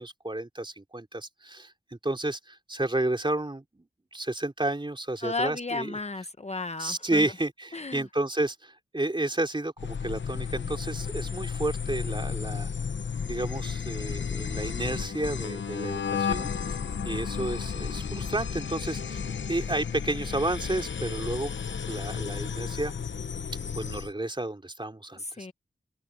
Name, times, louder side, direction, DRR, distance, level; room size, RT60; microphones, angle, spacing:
voice 1, 0.0-6.0 6.8-12.7 13.2-21.5 21.9-22.9 23.7-25.5, right 2 dB, 25° right, 4.0 m, -31 dB
voice 2, 5.2-7.2 7.7-8.0 25.2-25.5, left 3 dB, 35° left, 0.9 m, -33 dB
sound 1, 9.8-24.1, left 6 dB, 75° left, 1.0 m, -33 dB
open air
wide cardioid pair, 60°, 19 cm